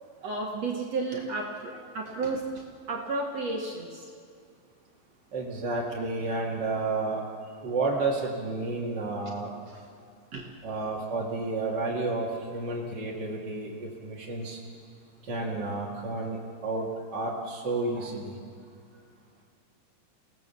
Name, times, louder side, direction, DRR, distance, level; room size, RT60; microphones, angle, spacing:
voice 1, 0.2-4.1 9.7-9.8 10.3-10.5, right 3 dB, 50° right, 0 dB, 2.4 m, -33 dB
voice 2, 5.3-7.2 7.6-9.5 10.6-14.6 15.3-18.4, right 3 dB, 35° right, -3 dB, 2.2 m, -31 dB
30.0 x 18.0 x 7.0 m, 2.2 s
omnidirectional pair, 4.5 m